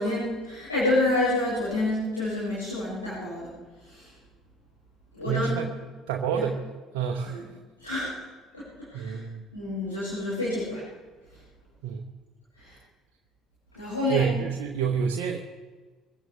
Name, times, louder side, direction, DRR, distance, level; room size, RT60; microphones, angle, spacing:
voice 1, 0.0-3.5 3.9-4.1 5.1-5.7 6.3-6.4 7.2-7.4 7.8-8.3 8.5-8.6 8.9-9.2 9.5-10.8 12.6-12.8 13.7-14.3, left 2 dB, 85° left, -10 dB, 5.9 m, -28 dB
voice 2, 5.3-5.7 6.1-6.6 6.9-7.4 8.9-9.4 11.8-12.0 14.1-15.4, right 7 dB, 60° right, 2 dB, 0.9 m, -28 dB
23.5 x 15.5 x 3.4 m, 1.4 s
figure-of-eight pair, 55°, 0 cm